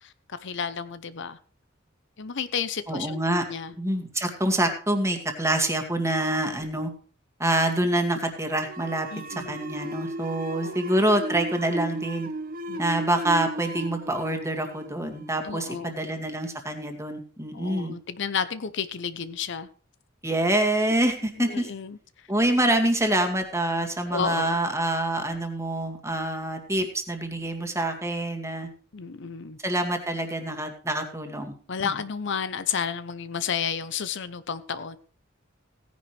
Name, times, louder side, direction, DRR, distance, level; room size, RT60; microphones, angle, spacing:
voice 1, 0.0-1.4 2.2-3.2 3.5-3.7 9.1-9.6 10.6-10.8 12.7-12.8 15.4-16.0 17.5-19.7 21.5-22.0 24.1-24.6 28.9-29.6 31.7-35.0, left 6 dB, 65° left, 13 dB, 0.8 m, -31 dB
voice 2, 2.9-3.4 3.8-6.9 7.4-12.3 12.8-17.9 20.2-21.7 22.3-28.7 29.6-31.6 31.8-31.9, right 1 dB, 15° right, 5 dB, 2.1 m, -26 dB
sound 1, 8.6-15.9, right 1 dB, 45° right, 1.2 m, -35 dB
17.0 x 10.5 x 3.3 m, 0.40 s
head